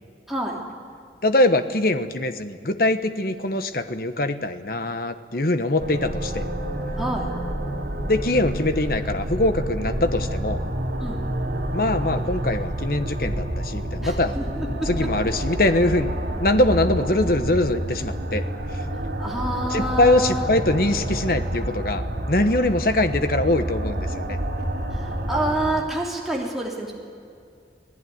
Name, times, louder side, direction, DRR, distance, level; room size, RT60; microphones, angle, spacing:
voice 1, 0.3-0.6 7.0-7.3 11.0-11.2 14.0-15.1 19.2-20.4 24.9-26.9, right 1 dB, ahead, -3 dB, 3.3 m, -28 dB
voice 2, 1.2-6.5 8.1-10.6 11.7-14.4 14.9-18.4 19.7-24.4, left 1 dB, 55° left, 9 dB, 1.2 m, -22 dB
sound 1, 5.8-25.7, right 1 dB, 80° right, 3.6 m, -28 dB
27.0 x 17.5 x 9.5 m, 2.4 s
head